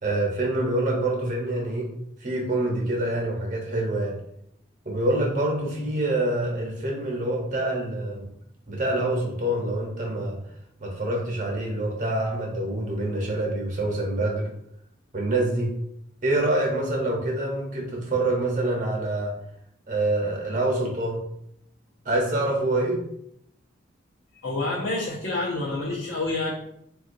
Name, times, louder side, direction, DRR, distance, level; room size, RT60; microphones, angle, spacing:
voice 1, 0.0-1.9 2.2-4.2 4.8-8.3 8.7-10.4 10.8-14.5 15.1-15.7 16.2-19.3 19.9-21.2 22.0-23.0, right 1 dB, 40° right, -1 dB, 0.9 m, -26 dB
voice 2, 24.4-26.5, left 2 dB, 70° left, -6 dB, 0.6 m, -28 dB
3.7 x 2.4 x 2.5 m, 0.73 s
head